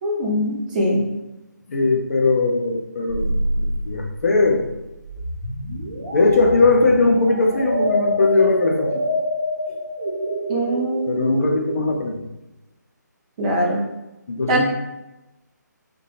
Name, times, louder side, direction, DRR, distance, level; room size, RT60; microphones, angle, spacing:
voice 1, 0.0-1.0 10.5-11.3 13.4-13.8 14.5-14.6, equal, 25° right, -3 dB, 0.5 m, -22 dB
voice 2, 1.7-4.7 6.1-9.1 9.7-9.8 11.1-12.3 14.3-14.6, left 3 dB, 55° left, 1 dB, 0.5 m, -19 dB
sound 1, 3.1-11.8, equal, 65° right, 0.9 m, -26 dB
2.7 x 2.2 x 2.8 m, 0.95 s
figure-of-eight pair, 150°, 10 cm